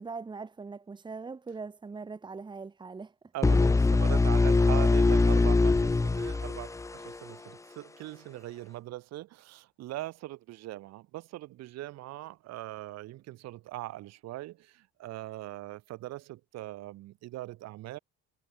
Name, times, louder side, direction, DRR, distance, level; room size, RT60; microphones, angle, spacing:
voice 1, 0.0-3.1, right 4 dB, 15° right, 2.5 m, -41 dB
voice 2, 3.3-18.0, right 16 dB, 60° right, 4.7 m, -41 dB
sound 1, 3.4-7.3, left 3 dB, 10° left, 1.1 m, -23 dB
cardioid pair, 155°, 29 cm